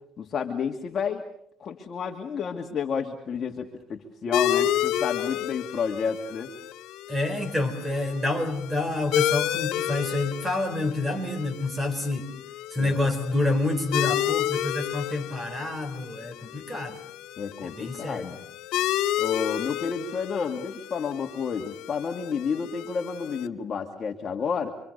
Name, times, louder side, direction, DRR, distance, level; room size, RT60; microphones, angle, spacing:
voice 1, 0.2-1.2 1.6-6.5 12.8-13.1 17.4-18.4 19.2-24.7, left 6 dB, 45° left, 2 dB, 2.2 m, -30 dB
sound 1, 4.3-23.5, left 13 dB, 75° left, 1.1 m, -31 dB
voice 2, 7.1-12.3 12.7-17.0 17.6-18.3, left 2 dB, 10° right, 8 dB, 4.2 m, -28 dB
27.5 x 25.0 x 6.7 m, 0.70 s
cardioid pair, 110°, 0 cm